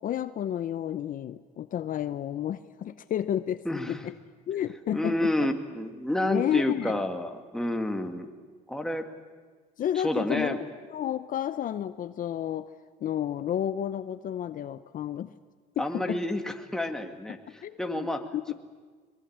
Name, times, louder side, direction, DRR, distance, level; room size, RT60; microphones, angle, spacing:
voice 1, 0.0-4.1 4.5-5.5 6.3-7.0 9.8-10.6 10.9-12.7 13.0-15.3 15.8-16.2 17.6-18.5, left 10 dB, 55° left, 13 dB, 0.8 m, -31 dB
voice 2, 3.7-4.0 4.9-8.3 8.7-9.1 10.0-10.6 15.8-17.4 17.8-18.5, left 1 dB, 5° left, 5 dB, 2.1 m, -29 dB
22.5 x 21.5 x 8.8 m, 1.5 s
cardioid pair, 110°, 17 cm